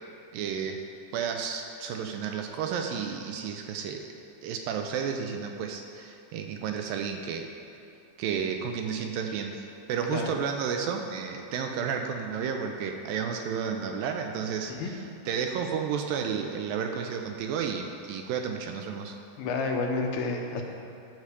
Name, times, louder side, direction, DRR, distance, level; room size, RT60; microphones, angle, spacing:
voice 1, 0.3-0.8 1.1-4.1 4.4-7.5 8.2-19.2, right 7 dB, 80° right, 4 dB, 2.2 m, -32 dB
voice 2, 19.4-20.6, left 3 dB, 85° left, 1 dB, 2.9 m, -30 dB
12.0 x 4.8 x 6.8 m, 2.7 s
omnidirectional pair, 4.4 m